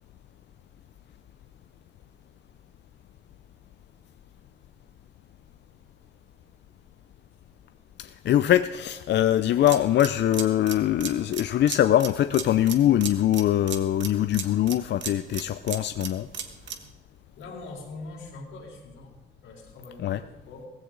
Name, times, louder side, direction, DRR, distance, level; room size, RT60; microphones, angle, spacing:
voice 1, 8.0-16.3 20.0-20.2, left 12 dB, 60° left, 0.5 m, -23 dB
sound 1, 9.6-16.9, right 7 dB, 65° right, 1.5 m, -37 dB
voice 2, 17.4-19.2 19.4-20.7, left 3 dB, 85° left, 4.3 m, -42 dB
16.5 x 15.0 x 3.9 m
cardioid pair, 90°, 20 cm